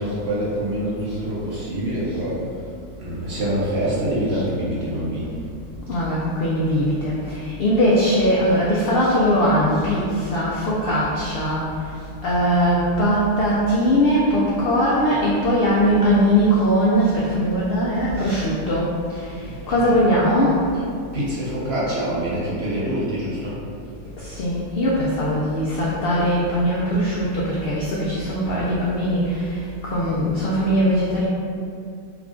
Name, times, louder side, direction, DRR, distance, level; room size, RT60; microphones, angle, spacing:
voice 1, 0.0-2.4 3.0-5.4 19.4-20.0 20.7-20.8 21.1-23.6, right 1 dB, 55° right, -7 dB, 0.8 m, -26 dB
voice 2, 5.9-11.7 12.2-18.9 19.7-20.6 24.2-29.5 29.8-31.3, equal, 80° left, -6 dB, 0.5 m, -20 dB
3.5 x 2.4 x 3.6 m, 2.5 s
omnidirectional pair, 1.6 m